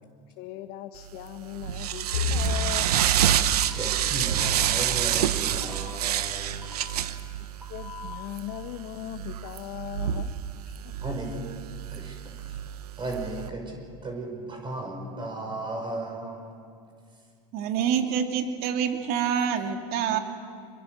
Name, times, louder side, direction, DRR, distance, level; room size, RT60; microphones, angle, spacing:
voice 1, 0.4-2.9 7.7-10.3 10.6-11.0, left 13 dB, 55° left, 8 dB, 1.1 m, -38 dB
sound 1, 1.1-13.5, right 10 dB, 85° right, 1.1 m, -28 dB
sound 2, 2.1-4.6, left 6 dB, 80° left, 4.2 m, -33 dB
sound 3, 2.6-2.7 3.6-3.8 4.6-4.7 5.6-5.7 6.6-6.7 7.6-8.1, left 3 dB, 5° right, 6.9 m, -44 dB
voice 2, 3.3-6.9 11.0-11.4 11.9-12.6 13.0-16.5 20.1-20.2, right 2 dB, 25° right, 2 dB, 5.6 m, -36 dB
voice 3, 17.5-20.2, right 8 dB, 55° right, 5 dB, 2.7 m, -26 dB
26.5 x 22.0 x 6.6 m, 2.3 s
hypercardioid pair, 100°, 19 cm